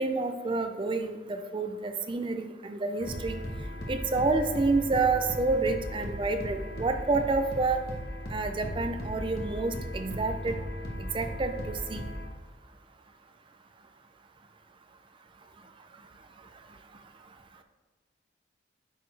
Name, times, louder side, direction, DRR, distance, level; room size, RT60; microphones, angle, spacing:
voice 1, 0.0-3.4 3.9-7.8 8.3-10.6 11.0-11.5 11.9-12.1, right 3 dB, 25° right, 7 dB, 0.4 m, -29 dB
sound 1, 3.0-12.3, equal, 55° left, 1.1 m, -37 dB
9.2 x 4.1 x 3.2 m, 1.4 s
head